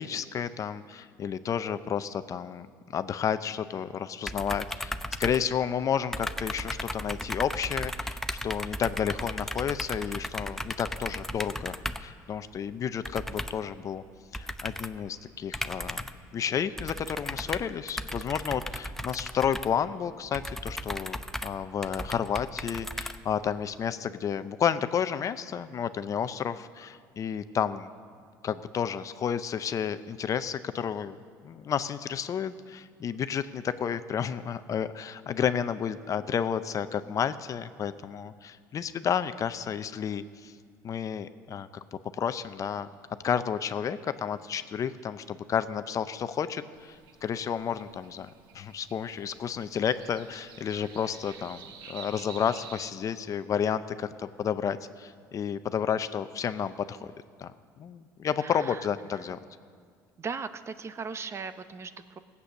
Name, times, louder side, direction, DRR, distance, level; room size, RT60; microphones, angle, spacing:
voice 1, 0.0-2.7 2.9-4.9 5.2-14.0 14.3-16.0 16.3-27.9 28.4-31.2 31.4-40.5 40.8-41.8 42.2-42.9 43.2-51.6 51.9-57.1 57.4-57.5 57.8-59.4, left 8 dB, 45° left, 12 dB, 0.6 m, -31 dB
sound 1, 4.3-5.9 6.1-12.2 13.0-13.7 14.3-15.0 15.5-16.3 16.8-23.6, left 1 dB, 5° left, 0.6 m, -36 dB
sound 2, 46.7-52.9, right 6 dB, 70° right, 1.3 m, -49 dB
voice 2, 58.4-58.9 60.2-62.2, right 5 dB, 35° right, 11 dB, 0.7 m, -38 dB
16.5 x 8.4 x 6.5 m, 2.1 s
supercardioid pair, 90°, 8 cm